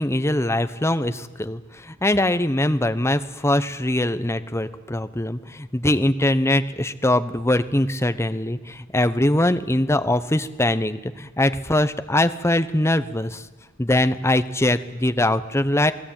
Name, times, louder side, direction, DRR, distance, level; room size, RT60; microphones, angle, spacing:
voice 1, 0.0-1.6 1.9-13.4 13.8-15.9, left 1 dB, 15° left, 10 dB, 1.0 m, -22 dB
28.5 x 19.0 x 9.1 m, 1.2 s
head